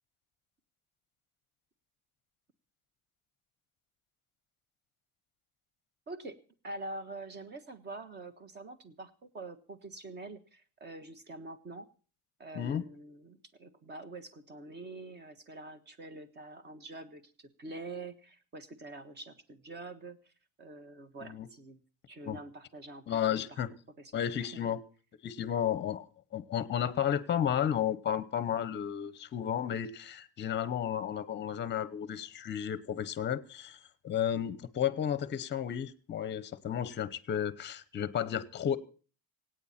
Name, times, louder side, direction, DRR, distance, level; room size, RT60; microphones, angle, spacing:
voice 1, 6.6-11.9 12.4-20.3 20.6-21.8 22.1-23.6 24.0-24.7, right 2 dB, 25° right, 1.4 m, -46 dB
voice 2, 12.5-12.8 21.2-21.5 22.3-22.4 23.1-23.7 24.1-24.8 25.2-26.1 26.3-33.8 34.0-38.8, left 9 dB, 30° left, 0.9 m, -32 dB
26.0 x 9.1 x 4.3 m
cardioid pair, 180°, 38 cm